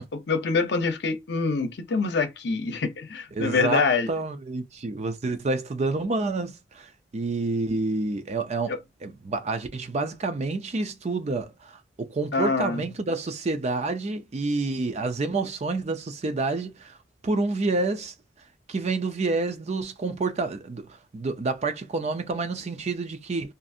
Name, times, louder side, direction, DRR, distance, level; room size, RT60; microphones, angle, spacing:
voice 1, 0.3-4.1 8.7-8.8 12.3-12.8, left 4 dB, 65° left, 0.6 m, -25 dB
voice 2, 3.3-8.8 9.0-17.0 17.2-18.1 18.7-23.5, right 3 dB, 40° right, 0.4 m, -28 dB
2.6 x 2.4 x 2.6 m
head